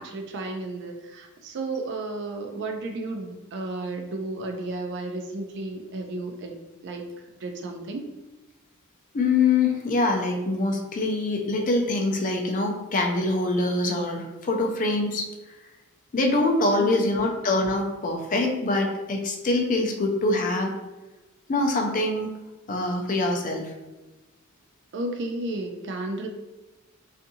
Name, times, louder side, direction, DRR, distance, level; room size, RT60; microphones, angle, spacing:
voice 1, 0.0-6.5 6.8-7.0 7.4-8.0 16.7-17.3 24.9-26.3, right 2 dB, 55° right, 4 dB, 0.4 m, -33 dB
voice 2, 9.1-15.2 16.1-20.7 21.5-22.3 22.7-23.7, left 2 dB, 35° left, 2 dB, 0.4 m, -24 dB
2.6 x 2.5 x 2.6 m, 1.1 s
head